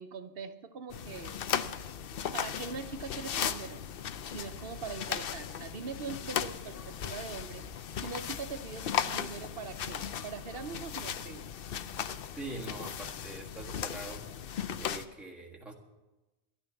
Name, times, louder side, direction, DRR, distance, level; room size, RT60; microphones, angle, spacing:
voice 1, 0.0-1.4 2.3-3.9 4.3-11.5, right 5 dB, 60° right, 9 dB, 0.9 m, -42 dB
sound 1, 0.9-15.1, left 8 dB, 60° left, 0.7 m, -37 dB
voice 2, 12.3-14.2 14.8-15.7, right 2 dB, ahead, -2 dB, 1.5 m, -43 dB
12.5 x 10.5 x 7.0 m, 1.1 s
omnidirectional pair, 1.2 m